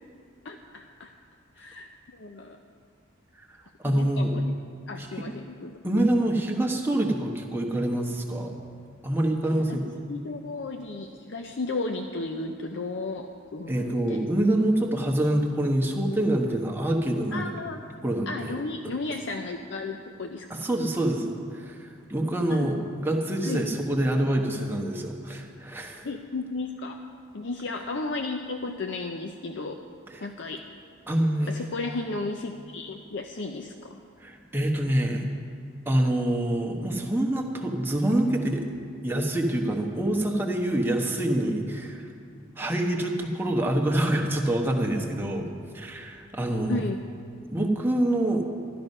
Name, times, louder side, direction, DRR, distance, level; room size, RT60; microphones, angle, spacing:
voice 1, 0.4-1.1 1.6-2.6 3.8-4.5 4.9-5.8 9.5-9.8 10.1-14.2 17.3-17.8 18.3-20.7 22.5-22.7 23.4-23.6 26.0-27.0 27.3-29.8 30.2-30.6 31.5-34.0 46.7-47.0, left 3 dB, 60° left, 4 dB, 0.6 m, -34 dB
voice 2, 3.8-4.4 5.0-5.1 5.8-8.6 9.0-9.8 13.7-17.5 18.0-18.5 20.5-26.0 30.1-30.3 31.1-31.5 34.2-35.2 35.9-38.7 39.0-42.1 42.6-45.5 45.7-46.8 47.5-48.4, right 1 dB, 10° right, 1 dB, 1.1 m, -26 dB
13.0 x 12.0 x 5.4 m, 2.3 s
head